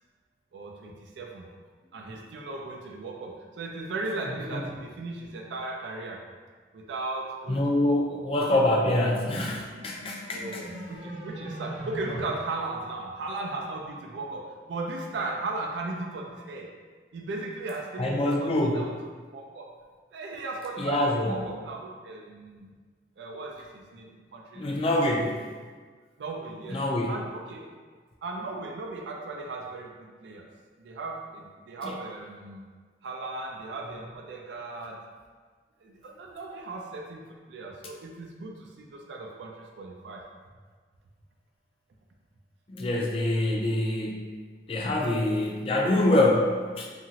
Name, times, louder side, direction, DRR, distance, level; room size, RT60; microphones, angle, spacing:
voice 1, 0.5-1.5 1.9-6.3 6.7-8.2 10.3-16.7 17.1-18.9 19.3-19.7 20.1-22.7 23.2-24.8 25.2-25.3 26.2-26.8 27.1-27.7 28.2-30.5 30.8-32.7 33.0-35.1 35.8-40.3, right 3 dB, 75° right, 1 dB, 0.3 m, -37 dB
voice 2, 7.5-10.6 18.0-18.8 20.8-21.3 24.6-25.3 26.7-27.1 31.8-31.9 42.7-44.2 44.7-46.9, left 1 dB, 30° left, -1 dB, 0.3 m, -25 dB
sound 1, 9.1-12.3, right 1 dB, 45° right, 0.9 m, -40 dB
2.8 x 2.4 x 2.8 m, 1.5 s
head